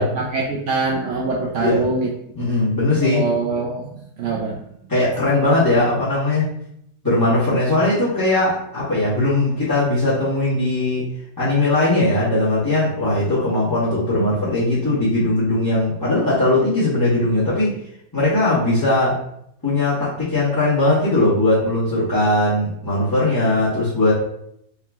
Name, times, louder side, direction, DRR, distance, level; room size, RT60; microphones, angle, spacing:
voice 1, 0.0-2.1 3.0-4.6, right 3 dB, 75° right, -2 dB, 0.6 m, -24 dB
voice 2, 2.3-3.2 4.9-6.4 7.0-11.0 11.4-17.7 18.1-19.1 19.6-24.1, left 2 dB, 15° left, -12 dB, 1.1 m, -19 dB
3.6 x 3.1 x 3.4 m, 0.74 s
omnidirectional pair, 1.9 m